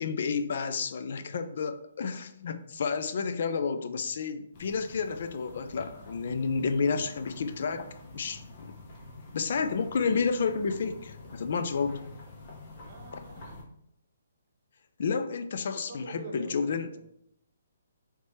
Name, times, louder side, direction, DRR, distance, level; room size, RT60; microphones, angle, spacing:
voice 1, 0.0-8.7 9.3-12.0 15.0-16.9, left 5 dB, 55° left, 10 dB, 0.4 m, -30 dB
sound 1, 4.5-13.6, left 2 dB, 35° left, 1.0 m, -48 dB
voice 2, 12.8-13.6 15.7-17.0, right 4 dB, 40° right, 2 dB, 1.0 m, -45 dB
3.3 x 3.3 x 4.2 m, 0.74 s
hypercardioid pair, 160°, 0 cm